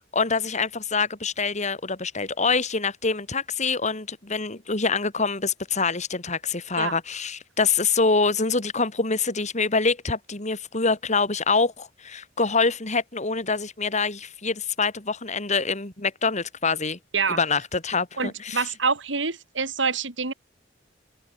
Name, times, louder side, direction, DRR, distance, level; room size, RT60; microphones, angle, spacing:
voice 1, 0.1-17.0 17.3-18.7, left 4 dB, 40° left, 3.2 m, -25 dB
voice 2, 18.2-20.3, right 4 dB, 80° right, 3.8 m, -26 dB
head